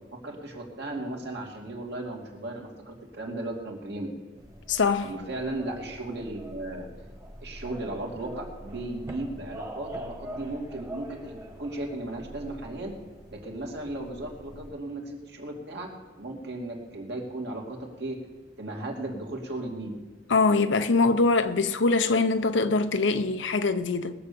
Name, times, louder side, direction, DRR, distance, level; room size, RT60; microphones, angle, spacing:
voice 1, 0.1-4.1 5.0-6.9 7.4-13.0 13.3-15.9 16.2-18.2 18.6-19.9, right 2 dB, 60° right, 2.5 m, -36 dB
sound 1, 4.4-14.7, right 1 dB, 20° right, 1.6 m, -44 dB
voice 2, 4.7-5.1 20.3-24.1, left 3 dB, 75° left, 0.7 m, -23 dB
20.5 x 7.0 x 6.9 m
head